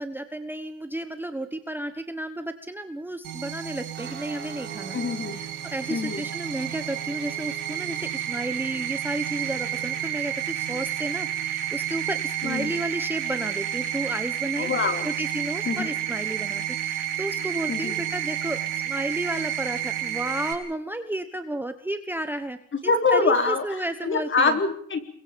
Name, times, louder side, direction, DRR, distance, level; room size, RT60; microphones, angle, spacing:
voice 1, 0.0-5.0 5.3-24.6, right 1 dB, 5° right, 9 dB, 1.2 m, -32 dB
sound 1, 3.2-20.5, right 10 dB, 80° right, 4.8 m, -30 dB
Guitar, 3.9-12.0, right 7 dB, 35° right, 7.1 m, -46 dB
voice 2, 4.9-5.4 5.9-6.2 12.4-12.7 14.6-15.1 15.7-15.9 17.7-18.0 22.8-25.0, left 4 dB, 35° left, 6 dB, 4.1 m, -24 dB
29.5 x 23.0 x 5.3 m, 0.63 s
cardioid pair, 120°, 32 cm